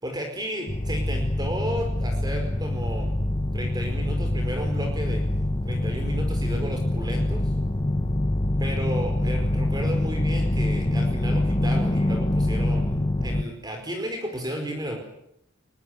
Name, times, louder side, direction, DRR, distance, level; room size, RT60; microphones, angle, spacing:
voice 1, 0.0-3.1 3.5-5.2 5.6-7.4 8.6-15.0, equal, 20° right, 4 dB, 4.8 m, -33 dB
sound 1, 0.7-13.4, left 1 dB, 25° left, 1.2 m, -25 dB
23.0 x 22.5 x 9.5 m, 0.75 s
head